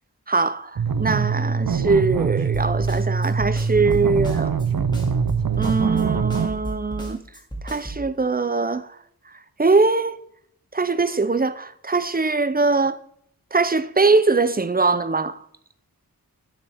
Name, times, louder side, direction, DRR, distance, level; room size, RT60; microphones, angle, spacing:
voice 1, 0.3-4.5 5.6-7.2 7.6-8.9 9.6-10.2 10.7-13.0 13.5-15.4, right 3 dB, 25° right, 0.5 m, -21 dB
sound 1, 0.8-6.5, right 6 dB, 65° right, 0.7 m, -23 dB
Snare drum, 2.5-8.0, right 1 dB, 10° left, 2.2 m, -33 dB
11.5 x 6.5 x 3.5 m
wide cardioid pair, 55°, 37 cm